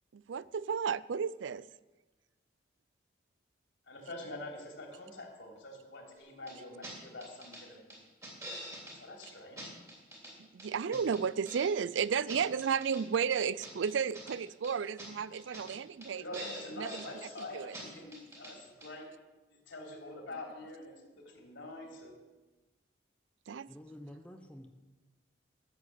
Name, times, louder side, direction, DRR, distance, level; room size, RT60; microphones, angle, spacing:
voice 1, 0.1-1.7 10.4-16.5 16.8-17.0 17.4-17.8 23.5-23.7, right 6 dB, 80° right, 19 dB, 0.4 m, -33 dB
voice 2, 3.9-7.9 8.8-9.7 16.2-19.1 19.7-22.1, left 2 dB, 80° left, 0 dB, 3.4 m, -46 dB
sound 1, 6.5-6.6 6.8-6.9 7.2-7.6 7.9-9.0 9.2-9.3 9.6-10.3 10.6-11.7 12.0-13.0 13.3-14.4 14.6-14.7 15.0-15.1 15.3-15.8 16.0-16.1 16.3-17.1 17.4-17.5 17.7-17.8 18.1-18.5 18.8-18.9, right 1 dB, 15° right, 3.2 m, -46 dB
voice 3, 23.7-24.7, equal, 5° left, 4 dB, 0.8 m, -49 dB
13.5 x 7.7 x 8.4 m, 1.2 s
head